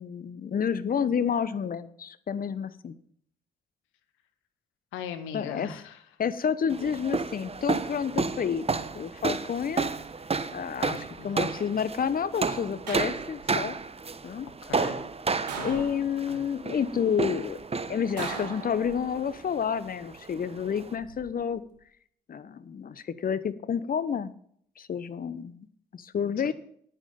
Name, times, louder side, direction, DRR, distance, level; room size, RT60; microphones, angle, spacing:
voice 1, 0.0-2.9 5.3-5.7 6.2-8.6 8.9-9.9 10.5-13.8 14.2-14.5 15.6-17.6 17.9-21.6 22.3-24.3 24.8-25.7 25.9-26.5, left 7 dB, 45° left, 15 dB, 0.9 m, -29 dB
voice 2, 4.9-6.0 11.2-11.5 14.6-15.0 15.5-15.8 16.3-16.4, left 8 dB, 75° left, 9 dB, 1.3 m, -39 dB
sound 1, 6.7-21.0, right 4 dB, 30° right, 1.0 m, -32 dB
sound 2, 12.9-13.6 15.5-16.4 18.2-19.3 20.7-21.2, right 6 dB, 90° right, 1.3 m, -39 dB
9.9 x 9.8 x 5.3 m, 0.65 s
hypercardioid pair, 40°, 21 cm